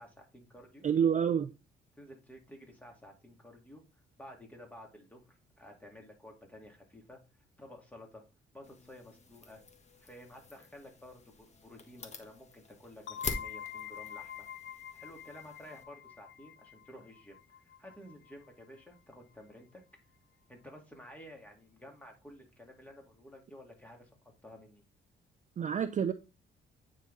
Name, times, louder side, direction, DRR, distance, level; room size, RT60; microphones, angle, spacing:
voice 1, 0.0-0.8 2.0-3.8 4.2-7.2 7.6-8.2 8.5-9.6 10.0-14.5 14.9-17.4 17.8-19.8 20.5-24.1 24.4-24.8, left 1 dB, 5° left, 2.4 m, -52 dB
voice 2, 0.8-1.5 25.6-26.1, right 8 dB, 40° right, 0.5 m, -28 dB
sound 1, 8.6-15.8, left 3 dB, 35° left, 1.3 m, -46 dB
sound 2, 13.1-18.5, left 9 dB, 70° left, 0.7 m, -46 dB
9.0 x 3.8 x 4.0 m
cardioid pair, 90°, 20 cm